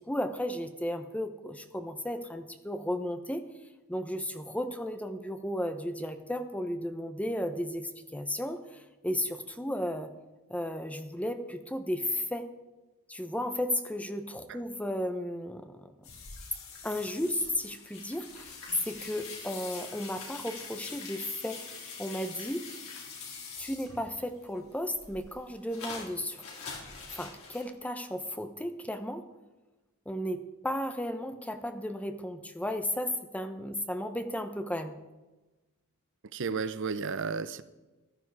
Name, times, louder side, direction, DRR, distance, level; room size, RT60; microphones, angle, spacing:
voice 1, 0.1-3.5 3.9-10.1 10.5-12.5 13.1-16.1 16.8-22.6 23.6-26.4 27.1-29.3 30.1-35.0, left 1 dB, 5° left, 8 dB, 0.9 m, -34 dB
sound 1, 16.0-24.3 24.6-27.7, left 5 dB, 80° left, 4.3 m, -44 dB
voice 2, 36.3-37.6, right 5 dB, 60° right, 13 dB, 0.7 m, -32 dB
15.0 x 12.0 x 4.8 m, 1.1 s
head